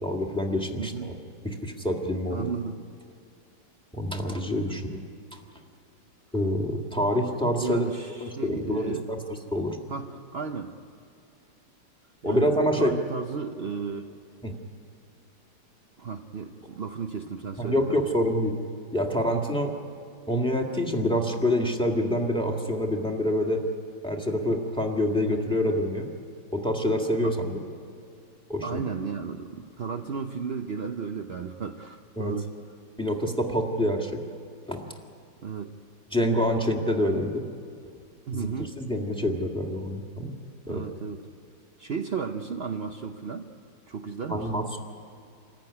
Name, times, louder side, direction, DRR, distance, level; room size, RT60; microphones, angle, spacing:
voice 1, 0.0-0.9 1.4-2.4 3.9-5.0 6.3-7.8 8.2-9.2 9.5-9.8 12.2-12.9 14.4-14.5 17.6-18.5 18.9-19.7 20.3-23.6 24.0-26.1 26.5-27.6 28.5-28.8 32.2-32.3 33.0-34.2 34.7-34.8 36.1-37.4 38.3-38.5 38.8-40.3 40.7-40.8 44.3-44.8, equal, 5° left, 2 dB, 1.8 m, -26 dB
voice 2, 0.8-1.2 2.3-2.8 7.6-9.1 9.9-10.8 12.2-14.0 16.0-18.0 27.2-27.3 28.6-32.6 35.4-35.8 38.3-38.8 40.7-41.3 41.8-43.5 43.9-44.5, right 5 dB, 60° right, 5 dB, 0.6 m, -34 dB
26.5 x 15.0 x 9.8 m, 2.5 s
omnidirectional pair, 2.1 m